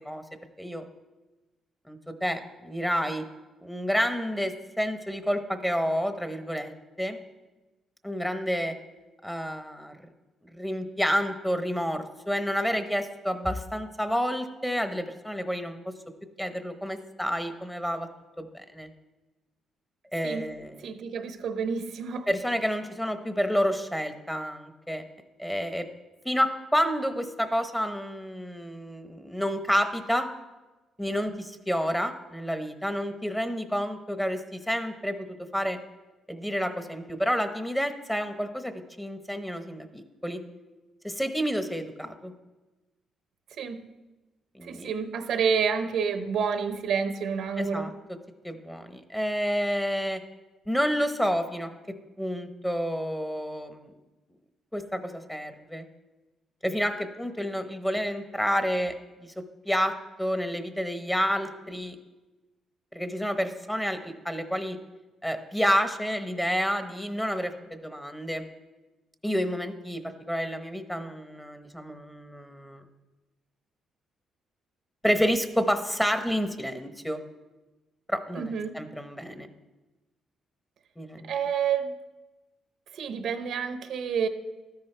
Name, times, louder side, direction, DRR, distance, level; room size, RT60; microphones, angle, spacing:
voice 1, 1.9-3.2 3.6-6.7 7.0-7.2 8.0-8.7 9.2-9.9 10.4-15.8 16.4-18.1 18.4-18.9 20.1-20.8 22.3-25.0 25.4-25.9 26.2-30.3 31.0-35.1 35.5-35.8 36.3-38.7 39.0-40.4 41.0-42.3 44.5-44.9 47.6-47.9 48.4-50.2 50.7-51.7 52.2-53.9 54.7-55.9 56.6-58.9 59.2-59.3 59.6-59.9 60.2-62.0 62.9-64.8 65.2-68.5 69.2-72.8 75.0-77.2 78.1-79.5 81.0-81.3, equal, 5° left, 7 dB, 1.0 m, -29 dB
voice 2, 20.8-22.3 43.6-43.8 44.6-47.9 78.3-78.8 81.2-81.9 82.9-84.3, right 6 dB, 70° right, 9 dB, 0.8 m, -29 dB
13.0 x 10.5 x 3.3 m, 1.1 s
cardioid pair, 90°, 0 cm